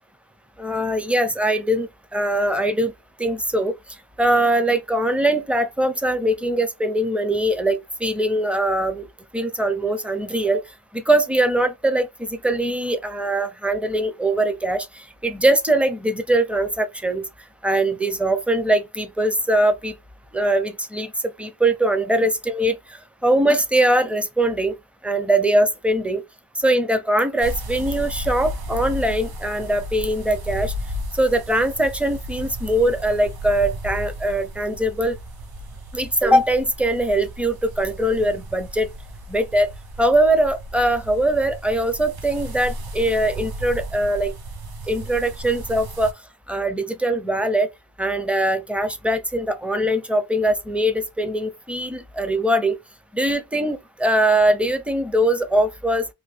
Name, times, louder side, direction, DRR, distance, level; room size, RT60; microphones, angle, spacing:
voice 1, 0.6-2.9 3.2-3.7 4.2-9.1 9.3-10.6 10.9-17.3 17.6-20.0 20.3-21.1 21.4-22.8 23.2-24.8 25.0-26.2 26.6-30.7 31.1-35.2 35.9-38.9 39.3-39.7 40.0-44.3 44.9-46.1 46.5-47.7 48.0-52.8 53.1-56.1, right 1 dB, 5° right, 0.5 m, -21 dB
sound 1, 27.4-46.1, equal, 65° right, 0.7 m, -34 dB
2.7 x 2.4 x 3.2 m
wide cardioid pair, 90°, 39 cm